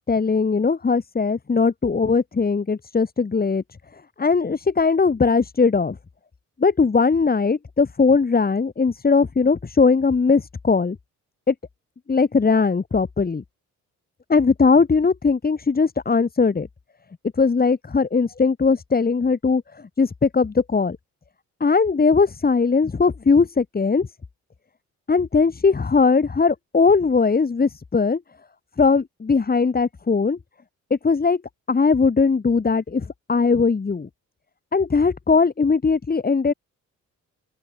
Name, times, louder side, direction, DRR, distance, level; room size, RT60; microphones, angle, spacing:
voice 1, 0.1-3.6 4.2-6.0 6.6-11.0 11.5-11.6 12.1-13.4 14.3-16.7 17.4-19.6 20.0-21.0 21.6-24.1 25.1-28.2 28.8-30.4 30.9-31.4 31.7-34.1 34.7-36.5, left 4 dB, 30° left, 4.6 m, -19 dB
open air
cardioid pair, 90°, 30 cm